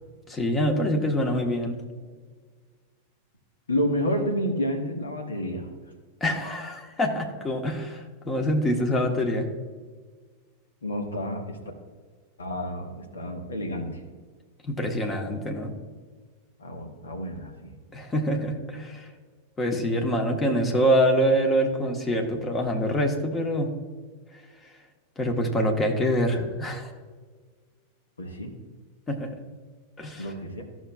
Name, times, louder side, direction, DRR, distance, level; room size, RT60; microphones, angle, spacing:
voice 1, 0.3-1.8 6.2-9.5 14.6-15.8 17.9-19.1 19.6-23.7 25.2-26.9 29.1-29.4 30.0-30.2, equal, 15° left, 2 dB, 1.3 m, -25 dB
voice 2, 3.7-5.7 10.8-11.6 12.4-14.0 16.6-17.7 28.2-28.5 30.2-30.6, equal, 75° left, 3 dB, 1.4 m, -30 dB
13.5 x 6.2 x 2.4 m, 1.5 s
figure-of-eight pair, 90°, 0 cm